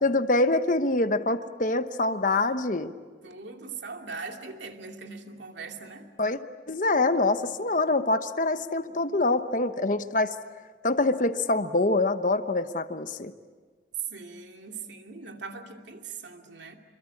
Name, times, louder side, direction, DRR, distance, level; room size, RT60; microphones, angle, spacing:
voice 1, 0.0-2.9 6.2-6.4 6.7-10.4 10.8-13.3, left 2 dB, 45° left, 10 dB, 1.0 m, -25 dB
voice 2, 3.2-6.1 8.9-9.0 14.1-16.8, right 4 dB, 70° right, 3 dB, 2.6 m, -41 dB
27.5 x 23.0 x 8.5 m, 1.5 s
head